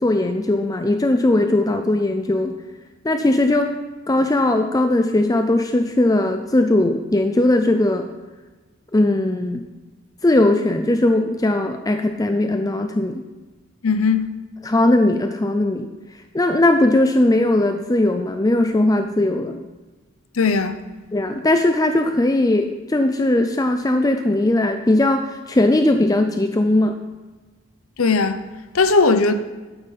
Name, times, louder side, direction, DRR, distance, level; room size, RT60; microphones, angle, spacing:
voice 1, 0.0-2.6 3.0-3.8 4.1-8.1 8.9-9.6 10.2-13.2 14.6-15.9 16.3-19.6 21.1-27.0, left 1 dB, 15° left, 0.4 m, -19 dB
voice 2, 13.8-14.3 20.4-20.8 28.0-28.4 28.7-29.3, left 4 dB, 75° left, 0.8 m, -17 dB
12.0 x 8.8 x 4.2 m
head